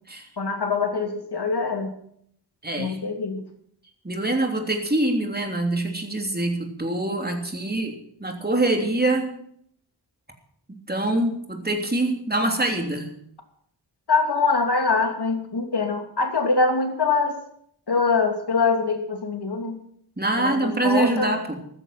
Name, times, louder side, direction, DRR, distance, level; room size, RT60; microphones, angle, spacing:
voice 1, 0.4-1.9 2.8-3.4 14.1-17.4 17.9-19.8 20.4-21.3, left 4 dB, 65° left, 4 dB, 2.9 m, -23 dB
voice 2, 2.6-3.0 4.0-7.9 8.2-9.3 10.9-13.1 20.2-21.6, right 2 dB, 20° right, 3 dB, 3.2 m, -24 dB
14.5 x 13.5 x 6.0 m, 0.67 s
wide cardioid pair, 75°, 42 cm